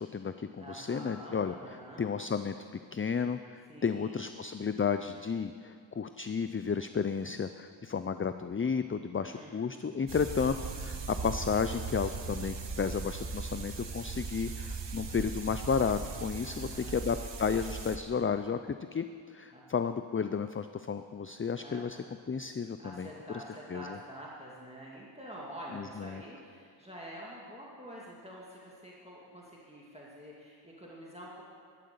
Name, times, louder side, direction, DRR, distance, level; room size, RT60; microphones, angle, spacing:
voice 1, 0.0-1.5 2.0-2.5 2.9-22.0 22.3-23.4 23.7-24.0 25.7-26.2, left 6 dB, 30° left, 10 dB, 0.4 m, -33 dB
voice 2, 0.6-2.1 3.7-4.3 9.3-9.8 16.4-17.0 19.5-19.7 21.6-22.1 22.8-31.4, equal, 15° right, -5 dB, 2.2 m, -47 dB
sound 1, 10.1-18.0, right 4 dB, 65° right, 1.2 m, -39 dB
12.5 x 12.0 x 6.8 m, 2.2 s
wide cardioid pair, 60°, 47 cm